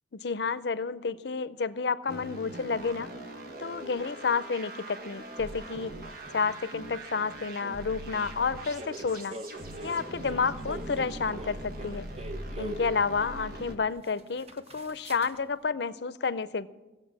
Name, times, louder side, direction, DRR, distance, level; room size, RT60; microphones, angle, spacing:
voice 1, 0.2-3.2 3.6-6.0 6.3-9.4 9.8-12.1 12.6-16.7, left 5 dB, 65° left, 15 dB, 0.6 m, -30 dB
sound 1, 2.1-13.8, right 1 dB, 55° right, 1.4 m, -41 dB
sound 2, 5.5-5.6 8.8-13.0 13.6-13.7 14.0-15.4, right 1 dB, 35° right, 0.8 m, -42 dB
17.5 x 7.6 x 7.4 m, 1.1 s
head